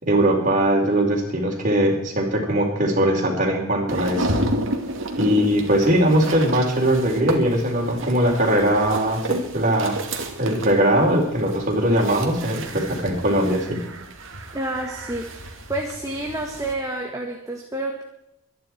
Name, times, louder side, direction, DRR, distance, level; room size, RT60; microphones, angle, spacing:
voice 1, 0.0-4.4 5.2-10.0 10.4-13.8, right 1 dB, 35° right, 0 dB, 4.2 m, -20 dB
sound 1, 3.9-16.7, right 1 dB, 60° right, 2.4 m, -32 dB
voice 2, 14.5-18.0, right 1 dB, 15° right, 1 dB, 1.8 m, -29 dB
24.5 x 10.5 x 4.6 m, 0.82 s
head